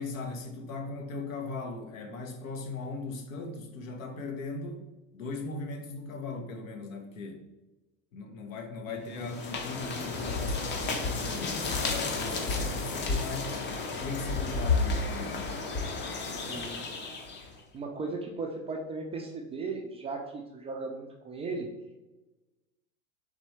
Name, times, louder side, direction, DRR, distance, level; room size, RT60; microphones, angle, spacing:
voice 1, 0.0-4.9 5.1-7.5 8.1-13.7 14.0-15.5, left 3 dB, 70° left, 4 dB, 0.9 m, -38 dB
voice 2, 8.9-9.2 16.3-16.8 17.7-21.7, right 3 dB, 15° right, 1 dB, 0.3 m, -37 dB
sound 1, 9.1-17.5, left 3 dB, 25° left, 0.6 m, -32 dB
4.2 x 3.3 x 3.1 m, 1.0 s
hypercardioid pair, 85°, 41 cm